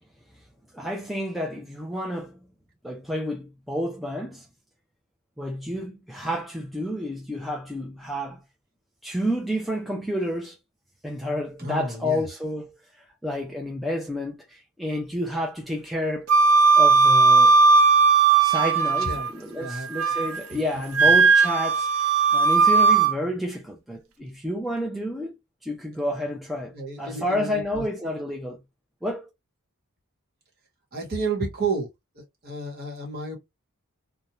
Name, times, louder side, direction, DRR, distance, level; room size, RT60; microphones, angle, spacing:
voice 1, 0.7-2.4 2.8-4.5 5.4-8.4 9.0-10.6 11.0-12.7 13.0-16.3 16.8-17.6 18.4-21.9 22.3-25.3 25.6-28.6 29.0-29.3, equal, ahead, 0.4 m, -30 dB
voice 2, 11.6-12.2 19.0-19.3 19.5-19.9 20.5-20.6 26.7-27.8 30.9-31.9 32.1-33.4, right 3 dB, 45° right, 1.2 m, -31 dB
Wind instrument woodwind instrument, 16.3-19.3 19.7-20.4 20.9-23.1, right 4 dB, 75° right, 0.6 m, -17 dB
2.5 x 2.1 x 2.9 m
head